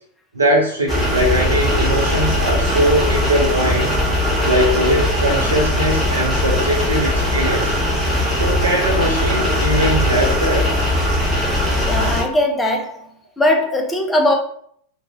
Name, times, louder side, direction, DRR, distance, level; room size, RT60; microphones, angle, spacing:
voice 1, 0.3-3.9 4.4-7.7 8.3-10.7, equal, 80° right, 0.4 m, -20 dB
sound 1, 0.9-12.2, left 1 dB, 5° right, 0.9 m, -19 dB
voice 2, 11.8-13.0 13.4-14.3, left 1 dB, 10° left, 0.5 m, -19 dB
2.4 x 2.3 x 2.8 m
figure-of-eight pair, 90°, 0 cm